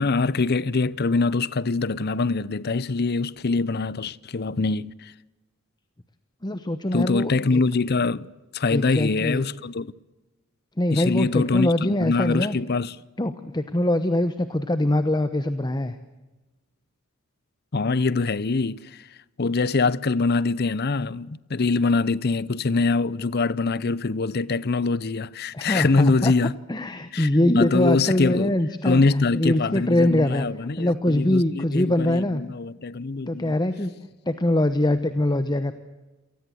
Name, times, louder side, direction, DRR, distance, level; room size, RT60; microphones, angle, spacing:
voice 1, 0.0-5.1 6.9-8.3 8.5-9.9 10.9-13.0 17.7-19.1 19.4-26.6 27.1-27.3 27.5-28.5 28.8-33.5, left 3 dB, 50° left, 0.7 m, -24 dB
voice 2, 6.4-7.6 8.7-9.4 10.8-12.6 13.2-15.9 25.5-26.3 26.7-29.0 29.3-30.5 30.8-32.4 33.3-33.9 34.3-35.7, left 1 dB, 20° left, 1.0 m, -23 dB
28.0 x 19.0 x 7.8 m
head